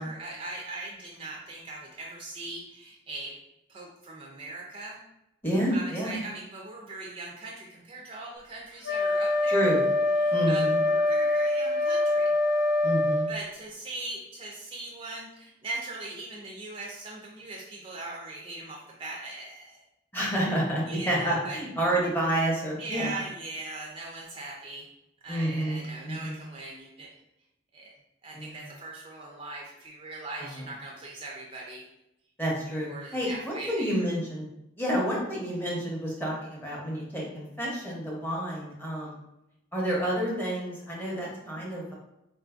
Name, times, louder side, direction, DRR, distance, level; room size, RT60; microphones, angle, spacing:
voice 1, 0.0-3.4 3.7-5.0 5.7-9.7 10.2-12.4 13.3-19.8 20.9-21.6 22.8-24.9 25.2-27.1 27.7-27.9 28.2-31.8 32.9-34.1, right 2 dB, 30° right, -2 dB, 0.4 m, -40 dB
voice 2, 5.4-6.2 9.5-9.8 10.3-10.8 12.8-13.3 20.1-23.2 25.3-26.4 28.3-28.6 30.4-30.6 32.4-34.5 34.8-39.1 39.7-41.9, right 1 dB, 10° left, -4 dB, 0.7 m, -29 dB
Wind instrument woodwind instrument, 8.8-13.3, left 2 dB, 50° left, 0.8 m, -24 dB
3.7 x 2.5 x 2.3 m, 0.88 s
head